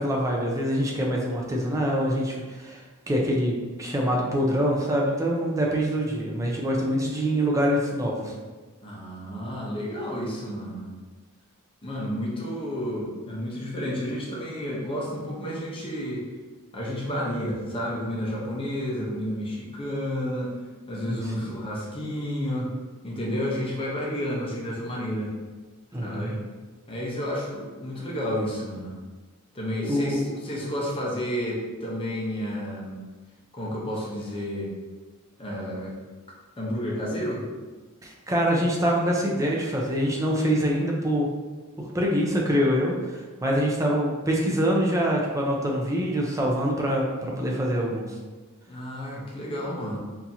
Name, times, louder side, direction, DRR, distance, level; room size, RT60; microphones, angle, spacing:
voice 1, 0.0-2.8 3.1-8.3 21.1-21.5 25.9-26.3 29.8-30.3 38.0-41.3 41.9-48.1, equal, 15° right, -2 dB, 0.6 m, -25 dB
voice 2, 8.8-10.9 11.8-16.3 16.7-20.5 20.9-22.7 23.0-25.3 26.0-26.4 26.9-28.9 29.5-33.0 33.5-34.8 35.4-35.9 36.6-37.4 48.7-50.0, equal, 25° left, -4 dB, 0.8 m, -31 dB
4.4 x 2.8 x 2.7 m, 1.3 s
head